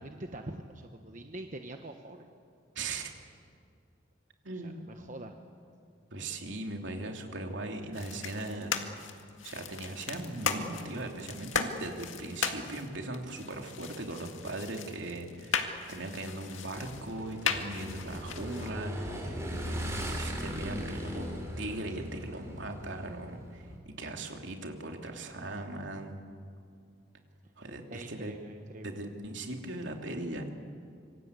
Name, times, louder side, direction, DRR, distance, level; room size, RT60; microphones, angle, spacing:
voice 1, 0.0-2.3 4.5-5.4 27.9-29.0, right 1 dB, 40° right, 4 dB, 1.2 m, -44 dB
voice 2, 2.7-3.1 4.4-4.8 6.1-8.9 9.4-26.2 27.6-28.4 28.8-30.5, right 2 dB, 70° right, 2 dB, 3.0 m, -39 dB
sound 1, 7.9-18.7, left 6 dB, 85° left, 2.0 m, -37 dB
Motorcycle / Engine, 16.8-23.8, equal, 15° right, 4.0 m, -38 dB
26.5 x 25.0 x 8.3 m, 2.3 s
head